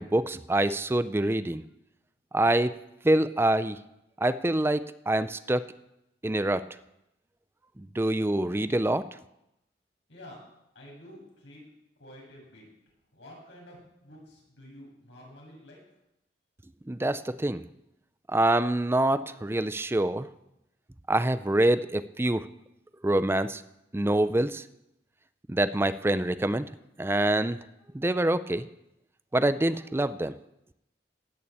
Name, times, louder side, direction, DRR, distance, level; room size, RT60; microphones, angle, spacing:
voice 1, 0.0-1.6 2.3-2.8 3.0-3.8 4.2-5.7 6.2-6.6 7.9-9.0 16.9-17.6 18.3-20.3 21.1-22.4 23.0-23.6 23.9-24.6 25.5-26.7 27.0-27.6 27.9-28.7 29.3-30.4, right 1 dB, 15° right, 13 dB, 0.4 m, -25 dB
voice 2, 10.1-10.4 10.7-11.6 12.0-12.7 13.1-15.8, left 1 dB, 90° left, -3 dB, 7.3 m, -49 dB
17.0 x 7.0 x 8.6 m, 0.86 s
head